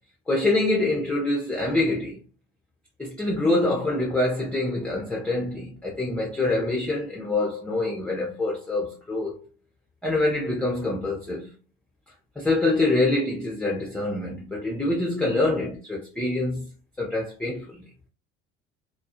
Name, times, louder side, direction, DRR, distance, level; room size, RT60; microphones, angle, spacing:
voice 1, 0.3-2.2 3.0-9.3 10.0-11.5 12.4-16.7 17.0-17.8, left 2 dB, 5° left, 0.7 m, -25 dB
2.3 x 2.1 x 2.7 m
hypercardioid pair, 65°, 35 cm